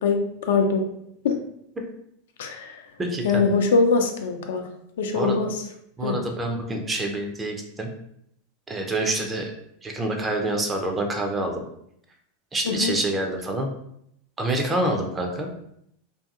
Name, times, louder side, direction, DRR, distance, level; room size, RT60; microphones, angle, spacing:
voice 1, 0.0-0.8 1.2-1.4 2.4-2.8 3.2-4.7 5.0-5.5 6.0-6.2 12.6-12.9, left 4 dB, 75° left, 4 dB, 0.4 m, -22 dB
voice 2, 3.0-3.4 5.1-5.3 6.0-7.9 8.7-9.5 9.8-11.6 12.5-13.7 14.4-15.5, right 1 dB, 20° right, 3 dB, 0.5 m, -27 dB
2.6 x 2.6 x 2.4 m, 0.73 s
hypercardioid pair, 95°, 0 cm